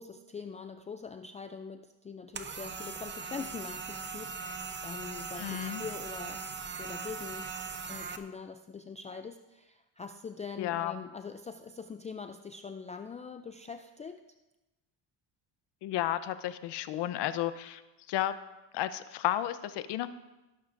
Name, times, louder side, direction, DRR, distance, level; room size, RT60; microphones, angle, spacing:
voice 1, 0.0-6.4 6.8-7.5 7.9-14.2, left 5 dB, 20° left, 7 dB, 0.3 m, -43 dB
sound 1, 2.3-8.2, right 5 dB, 25° right, 0.7 m, -40 dB
voice 2, 5.4-5.8 10.6-11.0 15.8-17.8 18.1-18.4 18.7-20.1, left 13 dB, 70° left, 12 dB, 0.8 m, -32 dB
17.0 x 11.0 x 2.6 m, 1.0 s
cardioid pair, 115°, 43 cm